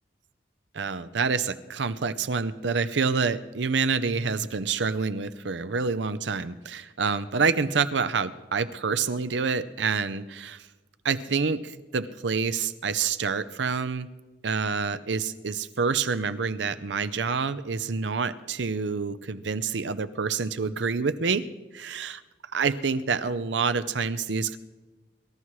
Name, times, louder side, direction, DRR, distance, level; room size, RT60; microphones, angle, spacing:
voice 1, 0.7-10.6 11.0-14.1 14.4-21.5 21.7-22.2 22.5-24.6, right 5 dB, 75° right, 14 dB, 0.6 m, -27 dB
24.0 x 13.5 x 3.2 m, 1.2 s
head